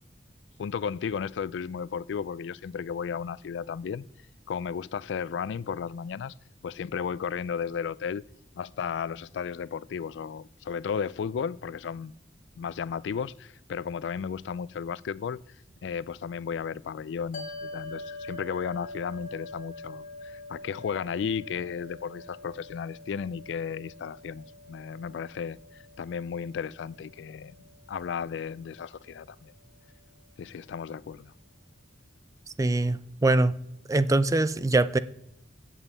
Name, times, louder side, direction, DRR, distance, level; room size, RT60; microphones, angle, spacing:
voice 1, 0.6-4.1 4.5-6.3 6.6-8.3 8.5-12.1 12.6-15.4 15.8-27.5 27.9-29.5 30.4-31.3, left 6 dB, 70° left, 0.3 m, -34 dB
sound 1, 17.3-29.8, left 2 dB, 45° left, 1.2 m, -45 dB
voice 2, 32.6-33.5 33.9-35.0, right 2 dB, 20° right, 0.4 m, -23 dB
8.1 x 7.2 x 8.3 m
head